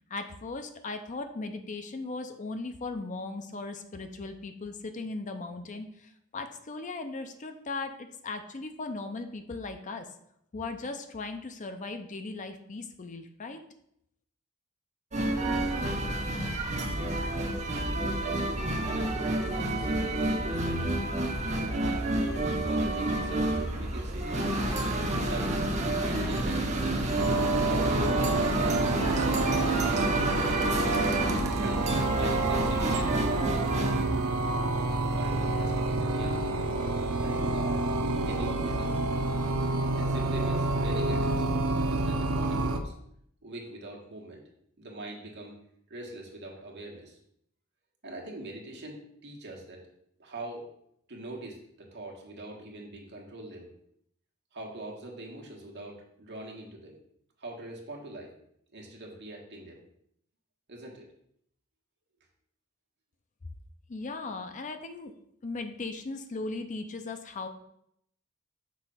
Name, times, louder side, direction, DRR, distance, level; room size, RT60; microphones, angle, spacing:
voice 1, 0.1-10.1 10.5-13.6 63.9-65.1 65.4-67.5, left 3 dB, 35° left, 7 dB, 0.5 m, -38 dB
sound 1, 15.1-34.0, right 1 dB, 35° right, 0.9 m, -29 dB
voice 2, 18.0-22.1 22.4-24.5 25.2-25.6 25.9-29.0 29.5-30.8 31.5-31.8 32.1-34.1 35.1-36.6 37.2-37.9 38.2-39.2 40.0-42.9 43.4-44.4 44.8-45.5 45.9-47.2 48.0-49.8 50.2-50.7 51.1-53.7 54.5-57.0 57.4-58.3 58.7-59.8 60.7-61.1, right 2 dB, 55° right, -1 dB, 1.5 m, -42 dB
sound 2, 27.2-42.8, right 2 dB, 75° right, 0.6 m, -29 dB
6.2 x 3.3 x 5.6 m, 0.73 s
head